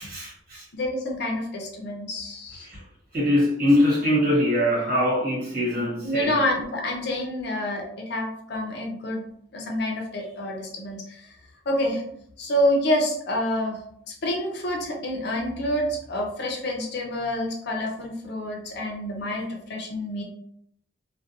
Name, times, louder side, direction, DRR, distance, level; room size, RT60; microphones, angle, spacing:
voice 1, 0.0-0.7 2.6-2.8 3.1-6.4, left 1 dB, 50° right, -5 dB, 1.4 m, -23 dB
voice 2, 0.7-2.7 6.0-9.2 9.5-11.3 11.7-12.0 12.4-13.8 14.2-20.2, left 1 dB, 60° left, 1 dB, 0.5 m, -27 dB
2.3 x 2.2 x 2.8 m, 0.70 s
head